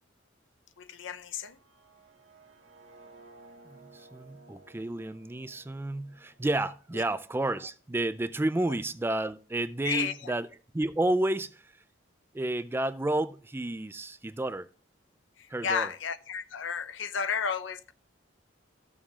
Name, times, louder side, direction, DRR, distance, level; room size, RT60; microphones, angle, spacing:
voice 1, 0.8-1.6 6.9-7.1 9.8-10.3 15.4-17.9, left 6 dB, 70° left, 0.6 m, -33 dB
sound 1, 1.4-7.3, right 3 dB, 75° right, 1.7 m, -57 dB
voice 2, 3.7-10.5 10.7-11.7 12.3-14.7 15.5-15.9, right 1 dB, 10° right, 0.3 m, -31 dB
14.0 x 7.2 x 2.4 m
head